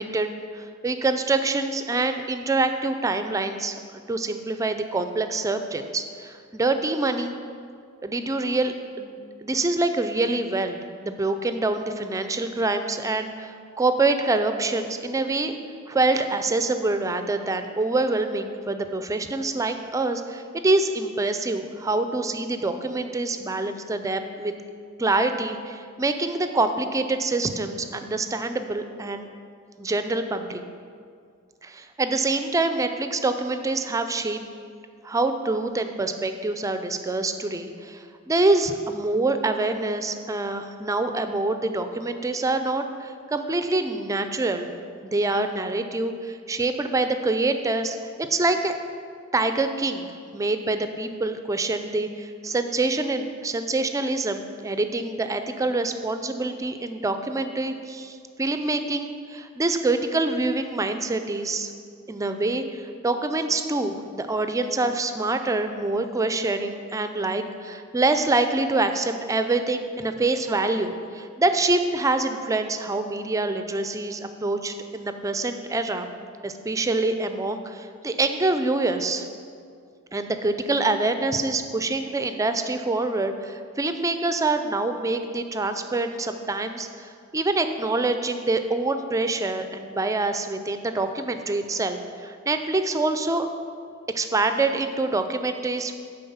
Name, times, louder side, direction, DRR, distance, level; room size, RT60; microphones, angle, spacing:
voice 1, 0.0-3.8 4.1-7.4 8.0-15.6 15.9-24.5 25.0-29.3 29.8-30.6 31.6-34.4 35.0-44.7 45.0-48.7 49.3-50.1 50.3-61.7 62.1-76.1 76.4-79.3 80.1-93.5 94.1-95.9, right 2 dB, 15° right, 8 dB, 0.4 m, -26 dB
9.2 x 3.9 x 5.5 m, 2.2 s
head